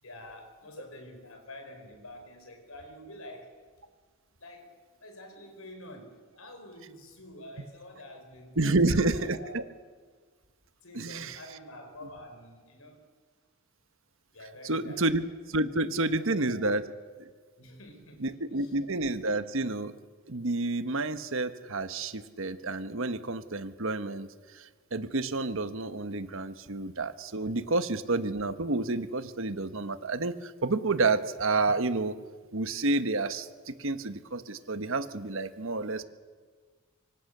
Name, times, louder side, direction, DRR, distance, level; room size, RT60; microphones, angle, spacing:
voice 1, 0.0-3.7 4.4-9.6 10.8-13.0 14.3-15.0 16.0-17.0 17.6-18.7, left 1 dB, 85° left, 5 dB, 5.0 m, -48 dB
voice 2, 8.6-9.6 10.9-11.4 14.6-16.9 18.2-19.9 20.3-24.3 24.5-32.2 32.5-36.0, right 2 dB, 65° right, 11 dB, 1.3 m, -29 dB
25.0 x 24.5 x 6.8 m, 1.5 s
head